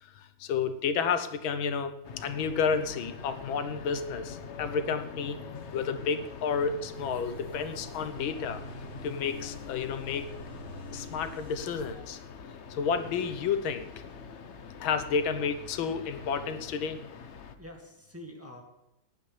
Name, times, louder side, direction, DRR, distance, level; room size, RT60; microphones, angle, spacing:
voice 1, 0.0-5.4 5.7-8.6 9.0-10.3 10.9-12.2 12.7-13.9 14.8-17.0, left 6 dB, 85° left, 10 dB, 1.7 m, -31 dB
sound 1, 2.0-17.6, left 6 dB, 55° left, 0.8 m, -44 dB
sound 2, 6.9-11.9, right 2 dB, 80° right, 4.9 m, -48 dB
voice 2, 17.6-18.6, equal, 5° right, -1 dB, 1.9 m, -46 dB
18.5 x 10.5 x 3.3 m, 0.90 s
omnidirectional pair, 2.2 m